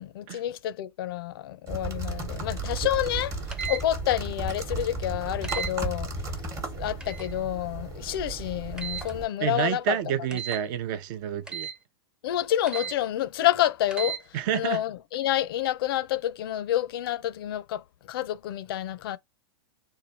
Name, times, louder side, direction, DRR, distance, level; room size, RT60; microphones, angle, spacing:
voice 1, 0.0-3.3 3.7-6.1 6.7-10.0 12.2-14.2 14.5-19.2, left 13 dB, 65° left, 0.4 m, -28 dB
sound 1, 1.7-9.2, right 2 dB, 25° right, 1.0 m, -34 dB
sound 2, 3.5-3.8 5.4-5.7 7.0-7.3 8.8-9.1 10.3-10.6 11.5-11.8 12.7-13.0 13.9-14.2, right 7 dB, 5° right, 0.5 m, -34 dB
voice 2, 9.4-11.7 14.3-14.8, right 10 dB, 55° right, 0.6 m, -29 dB
3.1 x 2.3 x 4.0 m
hypercardioid pair, 110°, 13 cm